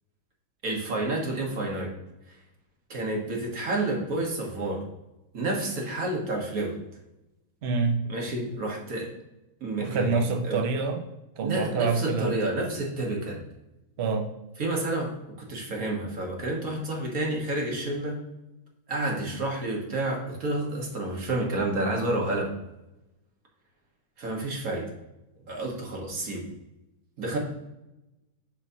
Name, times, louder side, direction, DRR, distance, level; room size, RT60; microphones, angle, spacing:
voice 1, 0.6-1.9 2.9-4.8 5.3-6.8 8.1-9.1 9.6-10.2 10.4-10.6 11.4-13.4 14.6-15.1 15.4-18.2 18.9-22.5 24.2-24.9 25.5-26.4 27.2-27.4, right 2 dB, 45° right, -1 dB, 1.8 m, -29 dB
voice 2, 7.6-8.0 9.8-11.0 11.4-12.4 14.0-14.3, right 4 dB, 70° right, 4 dB, 0.6 m, -26 dB
11.5 x 4.1 x 2.8 m, 0.94 s
omnidirectional pair, 2.1 m